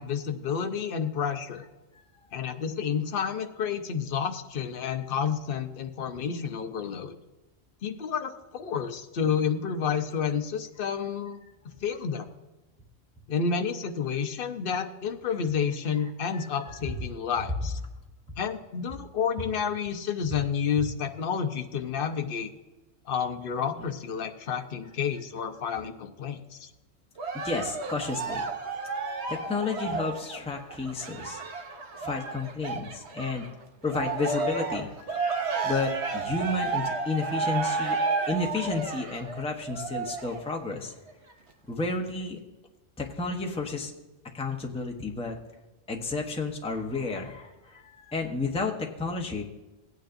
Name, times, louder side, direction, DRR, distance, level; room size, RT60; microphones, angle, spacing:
voice 1, 0.0-1.7 2.3-7.1 7.8-11.4 11.8-12.3 13.3-17.8 18.4-22.5 23.1-26.7, left 7 dB, 50° left, 6 dB, 0.9 m, -30 dB
Cheering, 27.2-33.5 33.9-40.5 41.1-41.2, right 4 dB, 60° right, 1.2 m, -32 dB
voice 2, 27.3-28.5 29.3-31.4 31.9-33.5 33.8-38.0 38.3-40.9 41.7-42.4 43.0-43.9 44.3-45.4 45.9-49.4, left 3 dB, 5° left, 1 dB, 0.8 m, -32 dB
17.0 x 9.2 x 2.6 m, 1.1 s
omnidirectional pair, 1.3 m